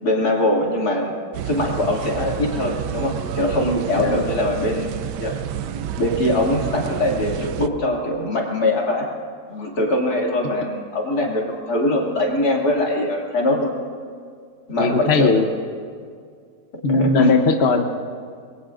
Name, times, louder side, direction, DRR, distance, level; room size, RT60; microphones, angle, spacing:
voice 1, 0.0-1.1 1.4-4.9 5.2-5.3 6.0-9.0 9.5-13.7 14.7-15.3 16.9-17.3, left 1 dB, 65° left, -2 dB, 3.0 m, -22 dB
sound 1, 1.3-7.7, right 10 dB, 85° right, 1.2 m, -29 dB
voice 2, 14.8-15.4 16.8-17.8, left 3 dB, 45° left, 4 dB, 1.0 m, -18 dB
26.5 x 21.5 x 2.5 m, 2.1 s
omnidirectional pair, 1.8 m